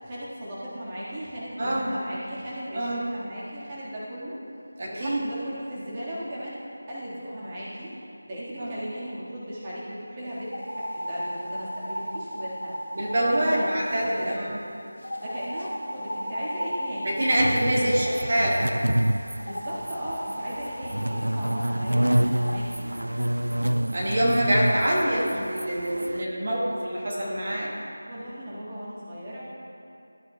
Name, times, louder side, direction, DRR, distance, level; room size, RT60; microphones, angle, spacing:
voice 1, 0.0-4.4 4.9-12.7 13.2-13.7 14.0-14.2 15.2-17.1 19.4-23.0 28.0-29.4, equal, 20° right, -9 dB, 1.6 m, -37 dB
voice 2, 1.6-1.9 2.7-3.0 4.8-5.2 8.6-8.7 12.9-14.6 17.0-18.7 23.6-27.7, right 1 dB, 40° right, -5 dB, 1.6 m, -25 dB
sound 1, 10.5-14.4 15.0-18.3 19.4-22.6, equal, 70° left, 1.2 m, -35 dB
sound 2, 17.2-26.2, right 1 dB, 80° right, 0.3 m, -27 dB
13.5 x 8.8 x 2.3 m, 2.6 s
figure-of-eight pair, 165°, 0 cm